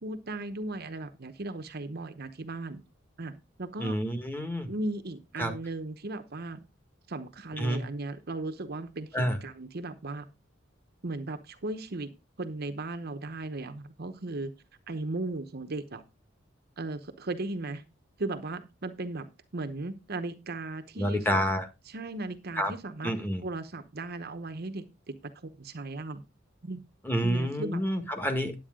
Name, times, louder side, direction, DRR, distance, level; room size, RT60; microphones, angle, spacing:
voice 1, 0.0-2.8 3.2-3.3 3.6-4.0 4.7-6.6 7.1-10.3 11.0-12.1 12.4-14.5 14.9-16.0 16.8-17.8 18.2-19.3 19.5-21.4 21.9-23.1 23.4-26.2 26.6-26.8 27.2-27.8, right 2 dB, 55° right, 9 dB, 0.9 m, -36 dB
voice 2, 3.8-4.7 5.4-5.5 7.6-7.8 9.1-9.4 21.0-21.6 22.6-22.7 23.0-23.4 27.0-28.5, equal, 10° left, 6 dB, 1.7 m, -28 dB
10.0 x 8.4 x 3.7 m, 0.26 s
head